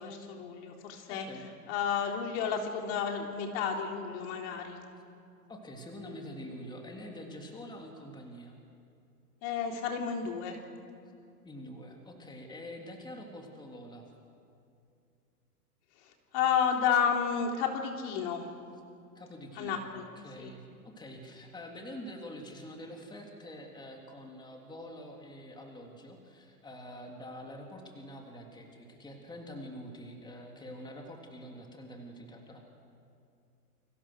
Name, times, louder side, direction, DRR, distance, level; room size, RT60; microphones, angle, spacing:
voice 1, 0.0-4.8 9.4-10.6 16.3-18.5 19.5-20.1 20.4-20.5, left 7 dB, 45° left, 2 dB, 3.8 m, -31 dB
voice 2, 1.1-1.7 5.5-8.6 11.4-14.1 19.2-32.6, equal, 10° left, 1 dB, 3.5 m, -46 dB
29.5 x 25.0 x 6.5 m, 2.5 s
hypercardioid pair, 115°, 47 cm